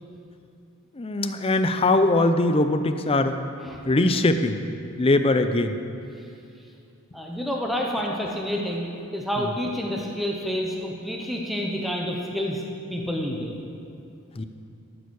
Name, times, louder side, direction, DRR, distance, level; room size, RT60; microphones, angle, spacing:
voice 1, 1.0-3.4 3.9-4.6 5.0-5.8 14.4-14.5, left 2 dB, 25° left, 8 dB, 0.5 m, -21 dB
voice 2, 3.6-4.0 7.1-8.9 9.1-12.6 12.9-13.6, equal, ahead, -1 dB, 0.9 m, -29 dB
13.0 x 7.0 x 6.3 m, 2.5 s
head